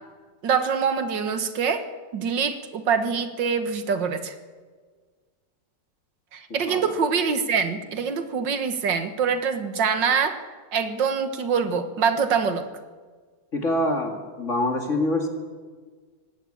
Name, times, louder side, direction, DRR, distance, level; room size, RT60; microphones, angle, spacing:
voice 1, 0.4-1.9 2.1-4.3 6.3-10.4 10.7-12.7, right 6 dB, 80° right, 9 dB, 2.2 m, -24 dB
voice 2, 13.5-15.3, left 1 dB, 40° left, 4 dB, 2.6 m, -25 dB
21.0 x 18.0 x 8.7 m, 1.5 s
omnidirectional pair, 1.9 m